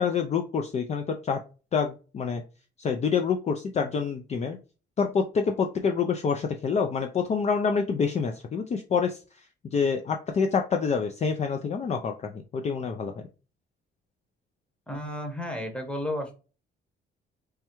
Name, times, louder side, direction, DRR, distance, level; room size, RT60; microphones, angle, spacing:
voice 1, 0.0-1.4 1.7-2.4 2.8-4.6 5.0-13.1, left 5 dB, 35° left, 4 dB, 0.4 m, -27 dB
voice 2, 14.9-16.3, left 1 dB, 5° left, 3 dB, 0.9 m, -32 dB
3.3 x 2.2 x 2.9 m, 0.35 s
cardioid pair, 90°, 20 cm